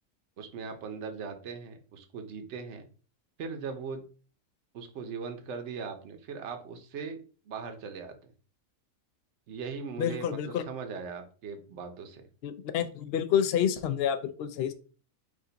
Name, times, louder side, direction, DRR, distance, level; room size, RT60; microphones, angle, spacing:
voice 1, 0.4-2.9 3.4-4.0 4.7-7.2 7.5-8.3 9.5-12.3, right 5 dB, 60° right, 6 dB, 1.0 m, -39 dB
voice 2, 10.0-10.6 12.4-14.7, left 9 dB, 60° left, 9 dB, 0.6 m, -28 dB
5.0 x 2.5 x 3.9 m, 0.38 s
omnidirectional pair, 1.5 m